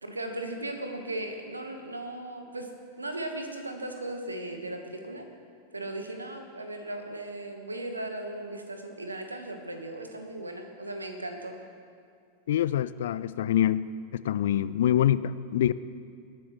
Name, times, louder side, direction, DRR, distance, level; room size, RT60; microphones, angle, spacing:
voice 1, 0.0-2.7 3.0-5.3 5.7-11.5, right 1 dB, 80° right, 5 dB, 1.2 m, -37 dB
voice 2, 12.5-15.7, left 11 dB, 60° left, 17 dB, 0.3 m, -25 dB
20.0 x 10.5 x 3.1 m, 2.3 s
figure-of-eight pair, 90°, 0 cm